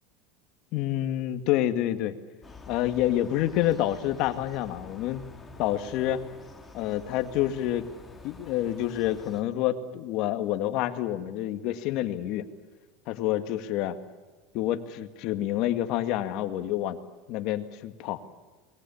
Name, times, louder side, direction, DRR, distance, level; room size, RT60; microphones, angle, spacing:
voice 1, 0.7-2.2 2.7-5.2 5.6-6.2 6.7-7.9 8.2-12.5 13.1-14.0 14.5-17.0 17.3-18.2, left 13 dB, 55° left, 9 dB, 2.1 m, -28 dB
sound 1, 2.4-9.4, left 3 dB, 10° left, 2.8 m, -48 dB
28.5 x 22.0 x 7.2 m, 1.3 s
supercardioid pair, 130°, 0 cm